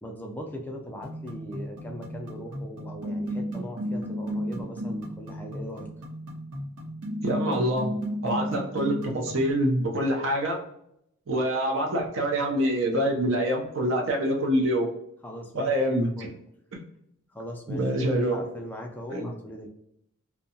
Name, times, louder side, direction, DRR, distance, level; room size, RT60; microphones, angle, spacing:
voice 1, 0.0-5.9 15.2-15.9 16.2-16.3 17.3-17.9 18.2-19.7, equal, 10° left, 1 dB, 0.3 m, -40 dB
sound 1, 1.0-9.5, equal, 85° right, 0.9 m, -34 dB
voice 2, 7.2-7.9 8.2-10.6 11.3-14.9 15.5-16.1 17.7-18.4 19.1-19.3, right 1 dB, 60° right, 1 dB, 0.5 m, -25 dB
2.6 x 2.2 x 2.6 m, 0.76 s
head